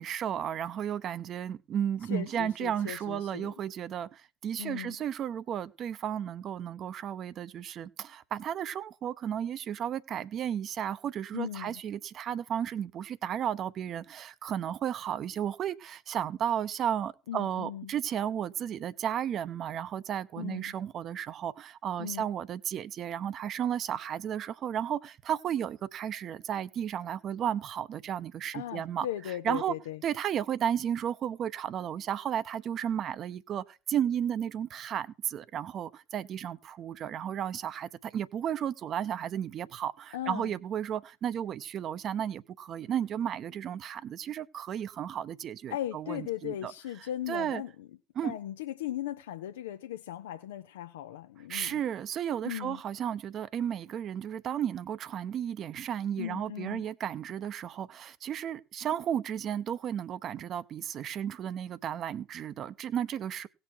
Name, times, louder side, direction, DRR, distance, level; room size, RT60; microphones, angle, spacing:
voice 1, 0.0-29.1 29.4-29.7 30.0-46.7 47.3-47.6 48.2-48.3 51.5-63.5, right 9 dB, 45° right, 0.8 m, -33 dB
voice 2, 2.0-3.5 4.6-5.0 11.3-11.8 17.3-17.9 20.4-20.7 22.0-22.3 28.5-30.0 40.1-40.5 45.7-47.9 48.2-51.8 52.4-52.8 56.2-56.8, left 12 dB, 75° left, 0.7 m, -38 dB
17.5 x 6.3 x 4.5 m
hypercardioid pair, 70°, 0 cm